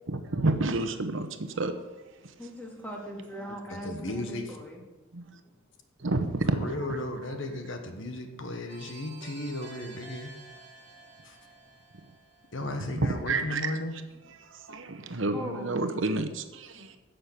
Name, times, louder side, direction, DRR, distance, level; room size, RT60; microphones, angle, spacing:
voice 1, 0.1-1.8 2.2-2.3 5.1-5.4 6.0-7.0 7.3-7.4 11.9-12.0 12.9-13.8 14.4-17.0, right 2 dB, 60° right, 8 dB, 0.9 m, -30 dB
voice 2, 2.4-4.8 15.3-15.8 16.9-17.0, equal, 5° left, -1 dB, 2.1 m, -40 dB
voice 3, 3.7-4.4 6.5-10.3 11.2-11.4 12.5-13.9, left 1 dB, 60° left, 5 dB, 1.4 m, -35 dB
sound 1, 8.7-13.4, right 4 dB, 25° right, 3.6 m, -51 dB
10.0 x 6.7 x 8.1 m, 1.2 s
head